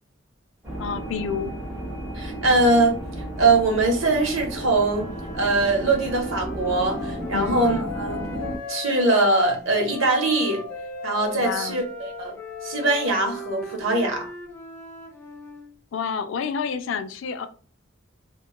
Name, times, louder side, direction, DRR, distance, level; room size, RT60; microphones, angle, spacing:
sound 1, 0.6-8.6, right 1 dB, 15° right, 0.9 m, -33 dB
voice 1, 0.8-1.5 7.3-7.6 11.4-11.9 15.9-17.5, left 6 dB, 65° left, 0.3 m, -29 dB
voice 2, 2.1-3.0 3.4-5.1 5.3-8.2 8.7-10.6 11.0-12.3 12.6-14.3, right 2 dB, 80° right, 0.8 m, -22 dB
Wind instrument woodwind instrument, 3.9-9.4 9.9-15.7, left 1 dB, 10° left, 0.6 m, -40 dB
sound 2, 6.7-13.9, left 10 dB, 60° right, 1.2 m, -40 dB
2.9 x 2.2 x 2.2 m
head